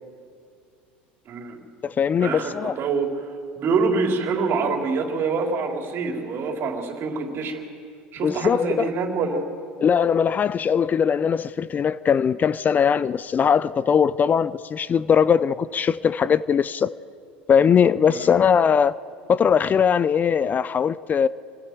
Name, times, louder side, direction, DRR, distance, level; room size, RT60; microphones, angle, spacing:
voice 1, 1.3-1.6 2.2-3.2 3.6-7.6 8.1-9.4 18.1-18.3, right 4 dB, 45° right, 3.7 m, -25 dB
voice 2, 1.8-2.7 8.2-8.9 9.8-16.9 17.5-19.0 19.3-21.3, left 7 dB, 30° left, 0.5 m, -20 dB
28.5 x 22.5 x 4.7 m
hypercardioid pair, 85°, 5 cm